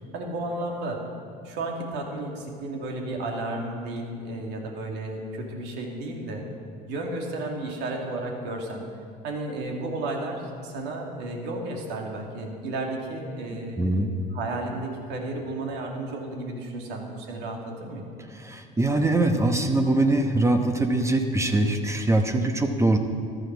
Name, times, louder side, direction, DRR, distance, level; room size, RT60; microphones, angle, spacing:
voice 1, 0.1-1.0 1.4-6.4 6.9-8.8 9.2-14.0 14.3-18.0, right 2 dB, 60° right, 1 dB, 2.6 m, -33 dB
voice 2, 13.8-14.1 18.3-23.0, right 2 dB, 15° right, 6 dB, 1.1 m, -23 dB
14.0 x 12.0 x 4.7 m, 2.3 s
hypercardioid pair, 75°, 20 cm